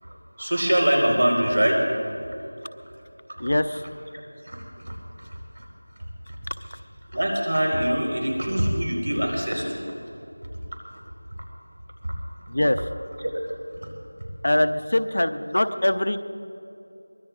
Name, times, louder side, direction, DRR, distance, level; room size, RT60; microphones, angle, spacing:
voice 1, 0.0-1.9 3.4-3.5 4.4-5.6 7.1-9.8 12.0-12.1 13.2-13.3, equal, 60° right, 1 dB, 4.4 m, -24 dB
voice 2, 3.4-3.8 12.5-12.8 14.4-16.2, left 1 dB, 55° left, 9 dB, 0.7 m, -22 dB
24.0 x 20.5 x 2.5 m, 2.8 s
figure-of-eight pair, 175°, 0 cm